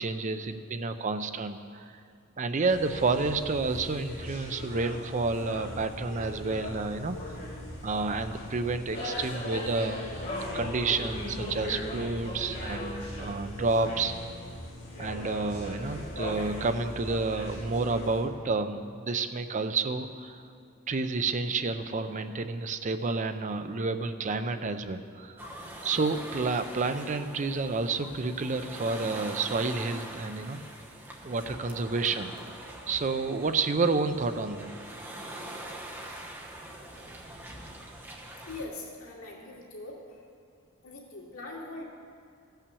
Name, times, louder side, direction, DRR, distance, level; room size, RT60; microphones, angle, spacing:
voice 1, 0.0-2.0 2.4-7.3 7.8-10.3 10.5-14.1 15.0-20.5 20.9-25.5 25.8-30.6 31.2-32.6 32.9-34.7, right 3 dB, 35° right, 9 dB, 0.5 m, -30 dB
sound 1, 2.7-18.2, left 1 dB, 50° left, 3.2 m, -38 dB
sound 2, 25.4-38.7, right 1 dB, 10° right, 1.1 m, -43 dB
voice 2, 38.5-40.2 40.8-41.8, left 2 dB, 85° left, -3 dB, 2.4 m, -42 dB
15.5 x 5.7 x 6.9 m, 2.4 s
head